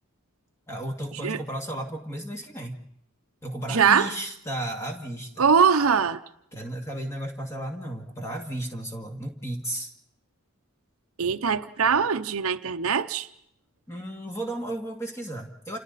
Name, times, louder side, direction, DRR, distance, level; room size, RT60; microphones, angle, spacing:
voice 1, 0.7-2.8 3.4-5.5 6.5-9.9 13.9-15.8, right 1 dB, 15° left, 2.3 m, -34 dB
voice 2, 3.7-4.1 5.4-6.2 11.2-13.3, right 6 dB, 75° right, 0.8 m, -22 dB
29.5 x 27.5 x 4.1 m
head